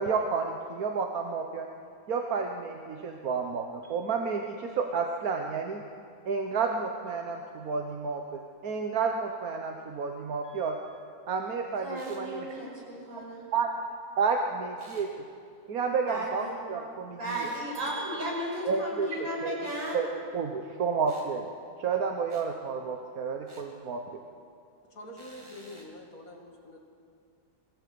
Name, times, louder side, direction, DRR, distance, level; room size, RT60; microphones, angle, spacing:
voice 1, 0.0-1.7 2.1-5.8 6.2-10.8 11.3-12.5 13.5-13.9 14.2-15.1 15.7-17.5 18.6-19.6 19.9-20.1 20.3-21.5 21.8-24.2, right 5 dB, 55° right, 4 dB, 1.4 m, -31 dB
voice 2, 11.8-13.4 16.1-16.6 17.2-20.0, right 1 dB, 70° right, -3 dB, 6.4 m, -35 dB
sound 1, 11.9-12.3 14.8-15.1 17.2-17.7 19.6-20.0 21.0-21.3 22.3-22.5 23.5-23.7 25.1-25.9, equal, 15° right, 2.6 m, -53 dB
voice 3, 24.9-26.8, left 1 dB, 45° left, 1 dB, 2.6 m, -45 dB
22.5 x 16.0 x 8.6 m, 2.4 s
omnidirectional pair, 2.1 m